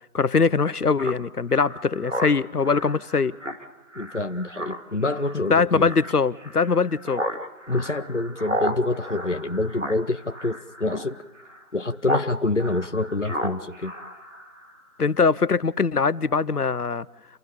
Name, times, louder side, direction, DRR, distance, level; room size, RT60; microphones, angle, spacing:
voice 1, 0.1-3.3 5.5-7.2 15.0-17.1, left 5 dB, 80° left, 0.9 m, -22 dB
Speech synthesizer, 1.0-12.3 12.6-14.8, equal, 55° right, 2.7 m, -34 dB
voice 2, 4.0-5.9 7.7-11.2 11.7-13.9, left 2 dB, 50° left, 0.9 m, -26 dB
28.5 x 16.5 x 7.0 m
figure-of-eight pair, 180°, 45 cm